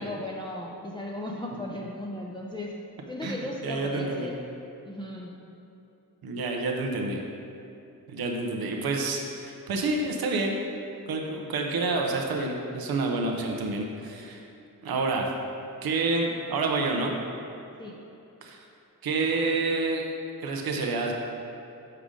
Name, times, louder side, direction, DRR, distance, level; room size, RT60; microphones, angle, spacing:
voice 1, 0.0-2.7 3.1-4.4 4.8-5.3 17.8-18.0, left 1 dB, 15° left, -3 dB, 0.5 m, -36 dB
voice 2, 3.6-4.3 6.2-7.2 8.1-10.5 11.1-14.4 14.8-15.3 15.8-17.1 18.4-18.6 19.0-20.0 20.4-21.1, right 3 dB, 90° right, 1 dB, 0.7 m, -28 dB
6.7 x 4.9 x 3.7 m, 2.8 s
cardioid pair, 75°, 35 cm